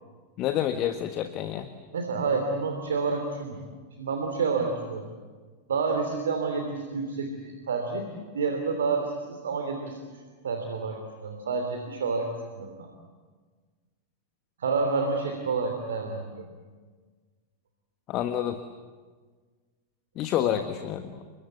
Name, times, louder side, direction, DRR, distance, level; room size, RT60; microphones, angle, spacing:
voice 1, 0.4-1.7 18.1-18.6 20.1-21.2, left 11 dB, 35° left, 9 dB, 1.4 m, -28 dB
voice 2, 1.9-3.6 4.0-5.1 5.7-8.1 8.3-10.0 10.4-12.9 14.6-16.4 20.4-20.5, right 4 dB, 65° right, 5 dB, 3.1 m, -29 dB
30.0 x 24.0 x 8.2 m, 1.5 s
figure-of-eight pair, 90°, 0 cm